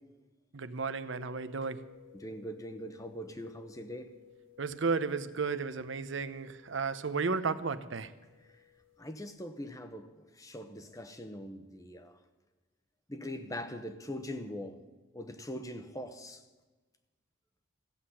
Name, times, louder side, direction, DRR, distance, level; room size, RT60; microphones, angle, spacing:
voice 1, 0.5-1.8 4.6-8.1, right 4 dB, 70° right, 12 dB, 0.7 m, -33 dB
sound 1, 1.0-9.3, left 13 dB, 75° left, 4.4 m, -60 dB
voice 2, 2.1-4.1 8.5-8.6 9.0-12.2 13.1-14.8 15.1-16.4, left 1 dB, 15° left, 9 dB, 0.8 m, -42 dB
14.5 x 7.7 x 9.9 m, 1.2 s
head